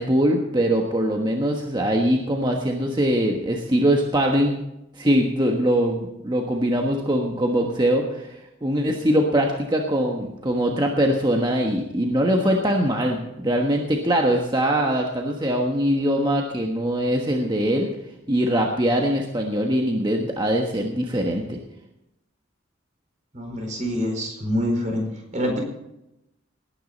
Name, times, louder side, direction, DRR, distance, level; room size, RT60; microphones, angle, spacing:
voice 1, 0.0-4.6 4.9-17.9 18.3-21.6, equal, 20° right, 1 dB, 1.3 m, -22 dB
voice 2, 23.3-25.0 25.3-25.6, equal, 40° right, 1 dB, 4.6 m, -25 dB
19.0 x 9.9 x 4.1 m, 0.87 s
head